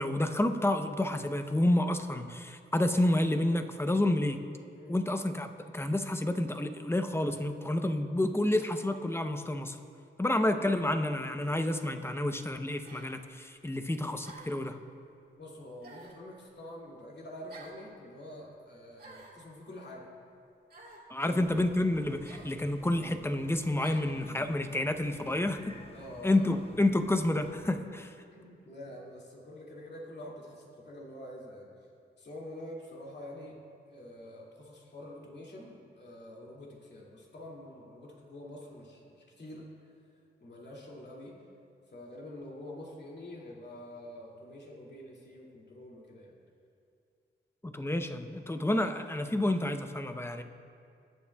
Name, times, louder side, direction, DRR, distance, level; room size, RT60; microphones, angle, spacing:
voice 1, 0.0-4.4 4.9-9.8 10.2-14.8 21.1-25.6 26.2-28.1 47.6-50.4, left 1 dB, 10° left, 7 dB, 0.7 m, -29 dB
sound 1, 11.4-11.6 12.8-13.1 14.2-14.7 15.8-16.2 17.5-17.8 19.0-19.4 20.7-21.1 22.2-22.5 23.8-24.1, right 2 dB, 50° right, 2.4 m, -51 dB
voice 2, 15.4-20.1 21.2-21.4 25.0-25.3 25.9-26.5 28.3-31.7 32.2-33.6 33.9-39.7 40.4-41.4 41.9-46.3, left 1 dB, 60° left, -3 dB, 2.4 m, -46 dB
sound 2, 21.4-27.8, left 2 dB, 30° left, 1.0 m, -51 dB
20.0 x 8.5 x 2.3 m, 2.4 s
cardioid pair, 60°, 20 cm